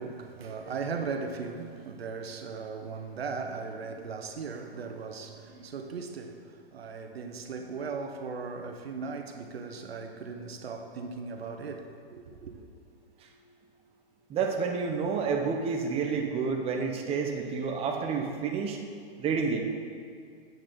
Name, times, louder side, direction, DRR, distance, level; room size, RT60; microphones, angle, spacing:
voice 1, 0.0-12.5, right 4 dB, 85° right, 1.2 m, -38 dB
voice 2, 14.3-18.8 19.2-19.6, right 5 dB, 20° right, 1.0 m, -29 dB
13.0 x 8.4 x 4.0 m
hypercardioid pair, 135°, 30 cm